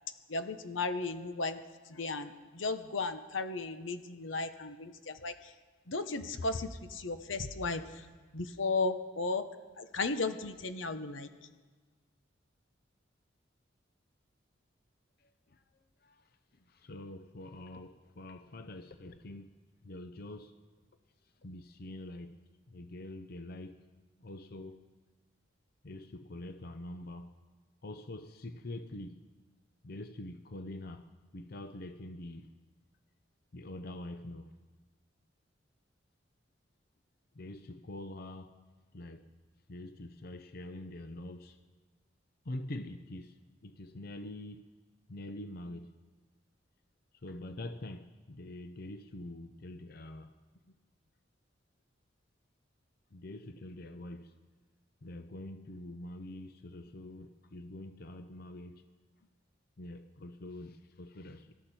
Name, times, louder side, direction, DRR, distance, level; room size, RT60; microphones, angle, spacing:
voice 1, 0.3-1.6 1.9-5.5 5.9-8.1 8.3-9.4 9.8-11.3, left 3 dB, 90° left, 1.1 m, -35 dB
voice 2, 15.2-15.6 16.0-16.2 16.7-19.5 19.8-20.5 21.4-22.4 22.7-23.8 24.2-24.9 25.8-27.3 27.8-29.2 29.8-31.1 31.3-32.5 33.5-34.5 37.3-38.5 38.9-39.3 39.7-41.6 42.4-43.4 43.6-44.7 45.1-45.9 47.2-50.3 50.7-50.8 53.1-54.3 55.0-58.8 59.8-61.5, left 1 dB, 50° left, 0.7 m, -45 dB
25.0 x 13.0 x 4.4 m
head